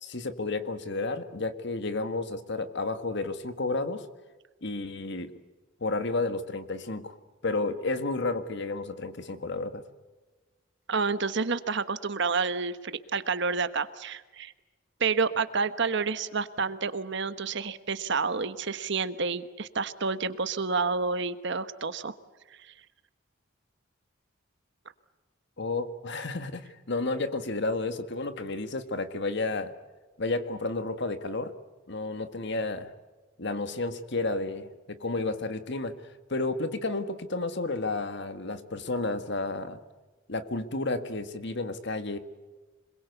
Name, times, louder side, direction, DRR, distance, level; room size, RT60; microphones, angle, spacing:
voice 1, 0.0-4.1 4.6-5.3 5.8-7.2 7.4-9.8 25.6-29.8 30.2-31.5 31.9-32.9 33.4-36.0 36.3-39.8 40.3-42.2, left 3 dB, 60° left, 10 dB, 1.7 m, -31 dB
voice 2, 10.9-14.5 15.0-22.1 22.6-22.7, right 4 dB, 60° right, 12 dB, 1.3 m, -29 dB
27.0 x 21.5 x 8.1 m, 1.3 s
head